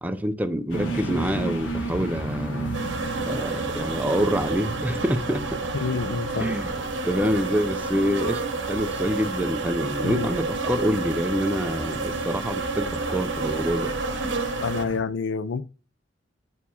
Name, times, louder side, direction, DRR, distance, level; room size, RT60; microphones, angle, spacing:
voice 1, 0.0-2.7 3.3-5.6 6.1-6.7 7.0-8.4 8.7-14.3, equal, 10° right, 0.5 m, -26 dB
sound 1, 0.7-15.0, right 1 dB, 90° left, 1.3 m, -35 dB
sound 2, 2.7-14.8, right 3 dB, 75° right, 1.0 m, -30 dB
voice 2, 5.8-6.5 10.0-10.3 14.6-15.6, left 5 dB, 70° left, 0.4 m, -27 dB
8.2 x 4.5 x 2.8 m
head